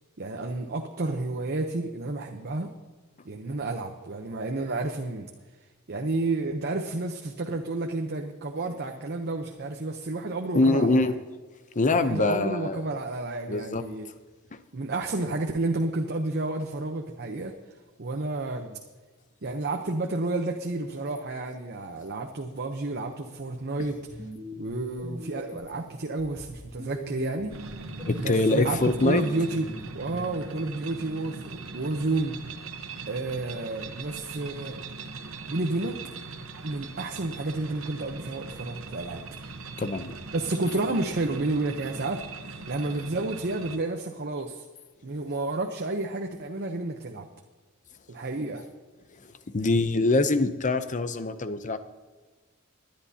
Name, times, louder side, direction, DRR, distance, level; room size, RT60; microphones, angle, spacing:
voice 1, 0.2-2.7 3.2-5.3 5.9-11.2 12.0-14.1 14.7-17.5 18.0-18.8 19.4-24.0 24.6-27.5 28.2-29.7 29.9-32.4 33.1-34.8 35.5-36.0 36.6-39.2 40.3-44.6 45.0-47.3 48.1-48.6, right 2 dB, 50° right, 3 dB, 0.8 m, -31 dB
voice 2, 10.5-11.1 11.7-12.8 13.5-13.8 14.5-14.6 28.1-29.2 39.8-40.2 49.5-51.8, left 2 dB, 35° left, 11 dB, 0.7 m, -24 dB
sound 1, 24.1-25.8 26.2-30.2, left 1 dB, 25° right, 1.8 m, -41 dB
sound 2, 27.5-43.8, right 4 dB, 70° right, 1.1 m, -41 dB
21.0 x 10.5 x 2.8 m, 1.3 s
head